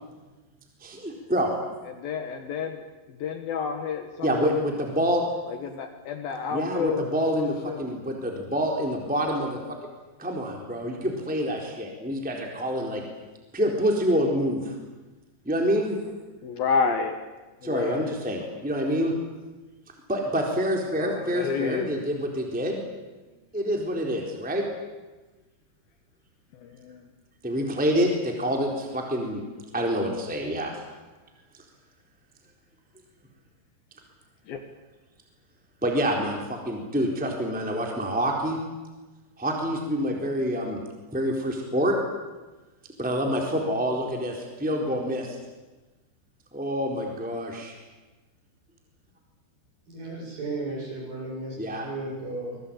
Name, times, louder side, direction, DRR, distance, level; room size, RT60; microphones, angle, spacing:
voice 1, 0.8-1.5 4.2-5.2 6.5-9.6 10.2-13.0 13.5-14.7 15.4-16.0 17.6-19.1 20.1-22.8 23.5-24.6 27.4-29.4 29.7-30.7 35.8-38.6 39.4-40.8 41.1-42.0 43.0-45.4 46.5-47.7 51.6-51.9, equal, ahead, 1 dB, 3.3 m, -27 dB
voice 2, 1.8-4.6 5.5-7.9 16.4-17.2 17.6-18.1 21.0-21.9 26.5-27.0 34.5-34.6, left 5 dB, 65° left, 6 dB, 2.9 m, -30 dB
voice 3, 49.9-52.6, right 2 dB, 45° right, -1 dB, 9.5 m, -35 dB
26.0 x 21.5 x 8.9 m, 1.2 s
omnidirectional pair, 5.2 m